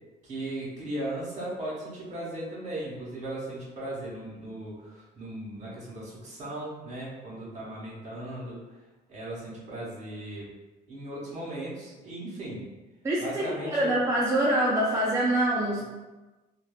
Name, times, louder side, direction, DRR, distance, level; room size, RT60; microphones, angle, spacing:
voice 1, 0.2-8.8 9.1-10.5 10.9-12.7 13.2-13.9 15.8-15.9, right 1 dB, 45° right, -6 dB, 1.2 m, -37 dB
voice 2, 13.0-15.8, right 1 dB, 15° right, -6 dB, 0.4 m, -25 dB
2.7 x 2.1 x 2.3 m, 1.1 s
cardioid pair, 110°, 17 cm